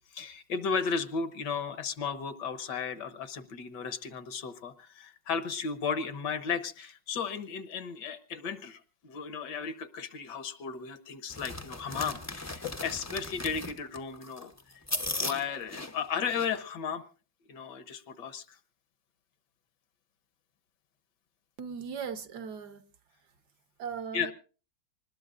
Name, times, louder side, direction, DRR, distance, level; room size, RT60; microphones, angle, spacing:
voice 1, 0.1-14.8 15.2-17.0 17.5-18.6 24.1-24.3, left 6 dB, 75° left, 10 dB, 1.6 m, -35 dB
sound 1, 11.3-16.6, left 2 dB, 25° left, 0.3 m, -37 dB
voice 2, 21.6-22.8 23.8-24.3, right 6 dB, 65° right, 9 dB, 1.6 m, -38 dB
25.0 x 20.0 x 2.5 m, 0.37 s
omnidirectional pair, 1.9 m